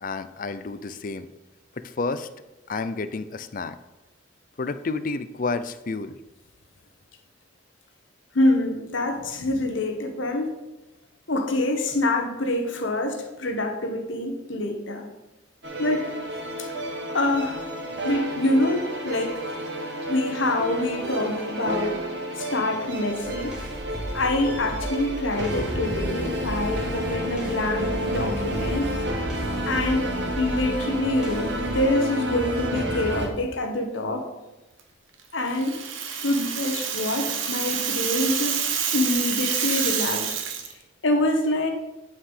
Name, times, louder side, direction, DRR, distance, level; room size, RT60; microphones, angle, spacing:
voice 1, 0.0-1.3 1.8-2.3 2.7-3.8 4.6-6.1, left 3 dB, 45° left, 11 dB, 0.5 m, -30 dB
voice 2, 8.3-10.5 11.3-15.1 15.8-16.1 16.6-16.7 17.1-17.7 18.0-19.4 20.1-22.0 22.3-23.6 24.1-28.9 29.7-34.2 35.3-35.9 36.2-38.6 38.9-40.4 41.0-41.7, left 1 dB, 80° left, 4 dB, 1.3 m, -26 dB
sound 1, 15.6-33.3, right 1 dB, 60° right, 1.4 m, -30 dB
sound 2, 23.2-31.8, equal, 5° right, 1.8 m, -36 dB
Rattle (instrument), 35.5-40.7, right 7 dB, 85° right, 1.2 m, -28 dB
9.5 x 5.8 x 4.9 m, 1.0 s
head